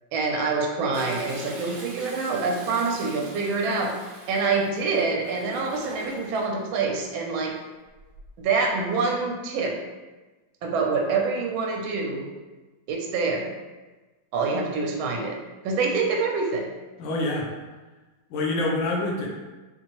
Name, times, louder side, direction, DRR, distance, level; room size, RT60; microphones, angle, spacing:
voice 1, 0.1-4.0 4.3-7.6 8.4-9.8 10.6-12.3 12.9-13.5 14.3-15.4 15.6-16.7, right 4 dB, 85° right, 1 dB, 1.4 m, -26 dB
Toilet flush, 0.9-6.5 7.9-8.4 8.9-9.0, right 1 dB, 55° right, 1.0 m, -43 dB
voice 2, 17.0-17.5 18.3-19.3, left 2 dB, 70° left, -2 dB, 1.4 m, -26 dB
4.4 x 2.6 x 2.9 m, 1.2 s
omnidirectional pair, 2.2 m